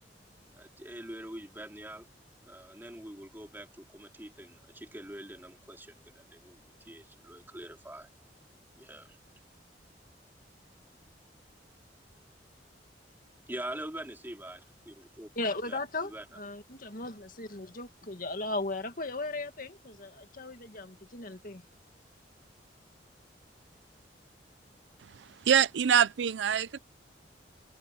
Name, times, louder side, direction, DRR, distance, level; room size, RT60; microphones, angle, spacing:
voice 1, 0.5-2.1 2.4-8.1 8.8-9.2 13.5-15.3 15.7-16.3, right 1 dB, 10° right, 3.3 m, -44 dB
voice 2, 15.4-21.6, left 2 dB, 50° left, 2.1 m, -37 dB
voice 3, 25.5-26.8, right 8 dB, 80° right, 0.5 m, -24 dB
head